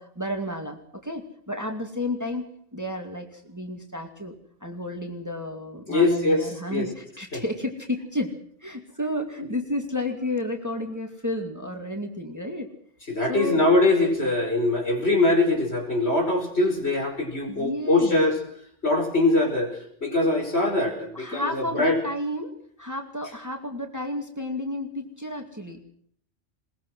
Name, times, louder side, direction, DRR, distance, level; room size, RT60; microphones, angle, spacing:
voice 1, 0.0-4.4 4.6-12.7 13.3-13.6 17.5-18.2 21.1-25.8, left 1 dB, 15° right, 4 dB, 2.4 m, -32 dB
voice 2, 5.9-6.9 7.3-7.4 13.1-18.4 18.8-22.0, left 2 dB, 60° left, 2 dB, 5.5 m, -22 dB
21.5 x 20.5 x 6.2 m, 0.64 s
omnidirectional pair, 1.2 m